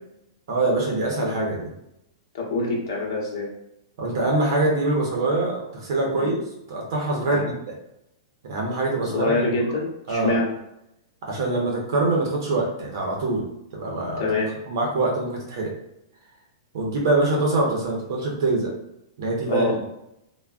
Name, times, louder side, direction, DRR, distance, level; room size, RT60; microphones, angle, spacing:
voice 1, 0.5-1.7 4.0-6.4 6.7-7.7 8.4-9.3 10.1-10.4 11.2-13.5 13.7-14.3 14.7-15.7 16.7-18.7 19.2-19.8, right 2 dB, 50° right, -1 dB, 0.6 m, -24 dB
voice 2, 2.3-3.5 6.1-6.3 7.3-7.5 9.1-10.5 14.2-14.5 19.5-19.7, left 2 dB, 55° left, -2 dB, 0.9 m, -25 dB
3.4 x 2.1 x 2.3 m, 0.82 s
supercardioid pair, 175°, 2 cm